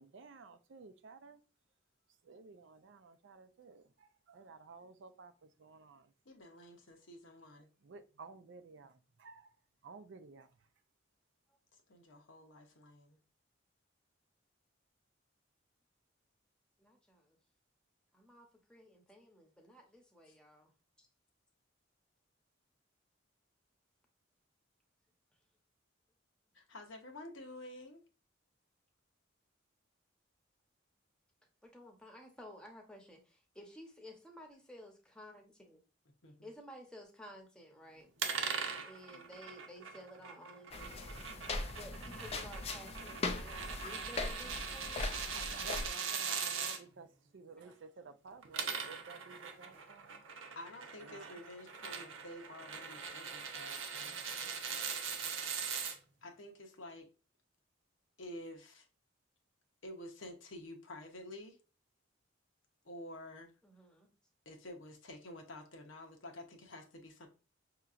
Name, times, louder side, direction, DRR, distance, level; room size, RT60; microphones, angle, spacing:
voice 1, 0.0-1.4 2.2-6.1 7.8-9.5 9.8-10.5 45.2-50.2 51.0-51.4 54.0-54.6, right 4 dB, 65° right, 0.4 m, -54 dB
voice 2, 6.3-7.7 11.7-13.2 26.5-28.0 36.2-36.5 50.5-54.3 56.2-57.1 58.2-58.9 59.8-61.6 62.8-63.5 64.5-67.3, left 1 dB, 75° left, 0.9 m, -50 dB
voice 3, 16.8-17.4 18.1-20.7 21.0-21.1 31.6-35.8 36.4-38.4 38.8-41.3 41.7-45.1 47.6-47.7 63.6-64.1, equal, 5° left, 0.9 m, -54 dB
sound 1, 38.2-46.8 48.3-55.9, right 6 dB, 85° right, 0.8 m, -41 dB
sound 2, 40.7-45.9, left 3 dB, 30° left, 0.4 m, -40 dB
5.7 x 2.9 x 2.5 m
head